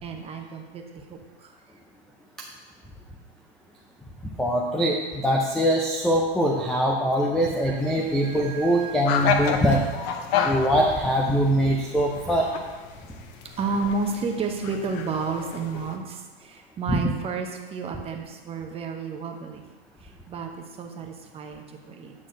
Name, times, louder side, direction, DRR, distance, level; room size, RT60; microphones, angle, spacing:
voice 1, 0.0-0.8 1.1-1.5 7.6-9.1 13.6-19.6 20.3-22.1, right 4 dB, 20° right, 3 dB, 0.9 m, -32 dB
voice 2, 4.4-9.9 10.4-12.5 16.9-17.1, equal, ahead, -1 dB, 0.4 m, -23 dB
sound 1, 7.8-16.0, left 7 dB, 40° left, 0.8 m, -31 dB
9.3 x 6.3 x 3.8 m, 1.3 s
hypercardioid pair, 130°, 32 cm